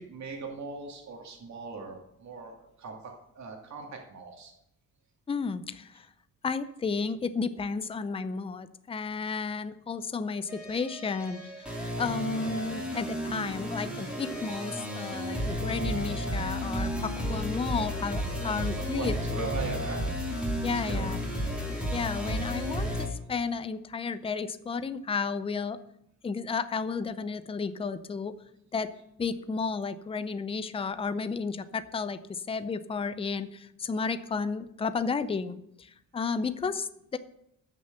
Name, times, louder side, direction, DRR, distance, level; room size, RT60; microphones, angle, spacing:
voice 1, 0.0-2.5 2.8-4.5 18.3-20.0 20.7-21.2, right 4 dB, 60° right, 1 dB, 2.4 m, -40 dB
voice 2, 5.3-6.1 6.4-19.5 20.6-21.2 21.9-25.8 26.2-28.3 28.7-28.9 29.2-37.2, left 5 dB, 15° left, 12 dB, 0.5 m, -32 dB
sound 1, 10.5-23.1, equal, 5° right, 3.0 m, -33 dB
13.5 x 6.6 x 6.8 m, 0.77 s
wide cardioid pair, 175°, 32 cm